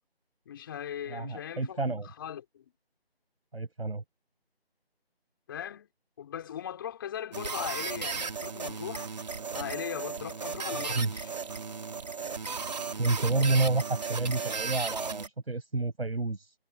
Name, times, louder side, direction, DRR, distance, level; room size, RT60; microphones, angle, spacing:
voice 1, 0.4-2.6 5.5-5.9 6.2-9.1 9.5-11.3, left 9 dB, 20° left, 5.0 m, -39 dB
voice 2, 1.1-2.1 3.5-4.0 10.7-11.1 13.0-16.5, right 3 dB, 70° right, 7.2 m, -29 dB
sound 1, 7.3-15.3, right 5 dB, 40° right, 3.3 m, -35 dB
figure-of-eight pair, 165°, 31 cm